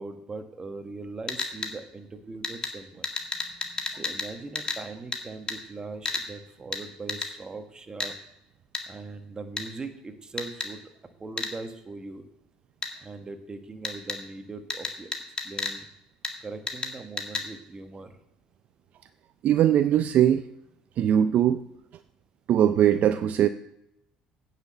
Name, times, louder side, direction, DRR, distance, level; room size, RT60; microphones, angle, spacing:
voice 1, 0.0-3.1 3.9-8.1 8.9-10.8 11.2-12.3 13.0-15.1 15.4-15.9 16.4-18.1, right 3 dB, 25° right, 7 dB, 1.3 m, -40 dB
sound 1, 1.3-1.7 2.4-2.7 3.0-4.3 4.6-4.8 5.1-5.2 5.5-5.6 6.1-6.3 6.7-6.8 7.1-7.3 8.0-8.1 8.7-8.8 9.6-9.7 10.4-10.7 11.4-11.5 12.8-12.9 13.8-14.2 14.7-15.8 16.2-16.3 16.7-16.9 17.2-17.5, left 4 dB, 25° left, 1.8 m, -31 dB
voice 2, 19.4-20.5 21.0-21.6 22.5-23.5, right 10 dB, 55° right, 12 dB, 0.4 m, -21 dB
9.6 x 6.0 x 7.1 m, 0.82 s
supercardioid pair, 85°, 3 cm